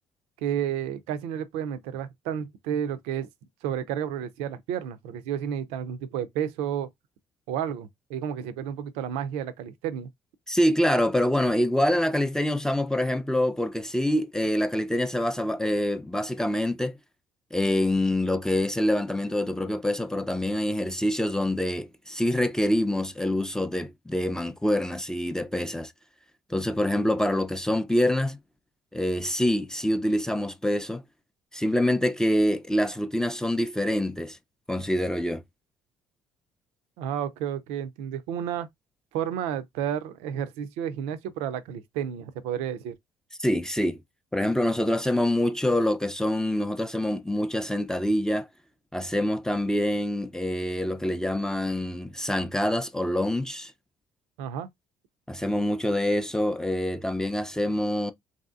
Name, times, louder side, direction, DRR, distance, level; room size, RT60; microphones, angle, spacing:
voice 1, 0.4-3.3 3.6-6.9 7.5-10.1 37.0-38.7 39.1-43.0 54.4-54.7, right 9 dB, 80° right, 0.5 m, -31 dB
voice 2, 10.5-17.0 17.5-25.9 26.5-28.4 28.9-31.0 31.5-34.4 34.7-35.4 43.4-44.0 44.3-48.5 48.9-53.7 55.3-58.1, left 1 dB, 5° left, 0.4 m, -26 dB
3.2 x 2.7 x 2.4 m
hypercardioid pair, 60°, 10 cm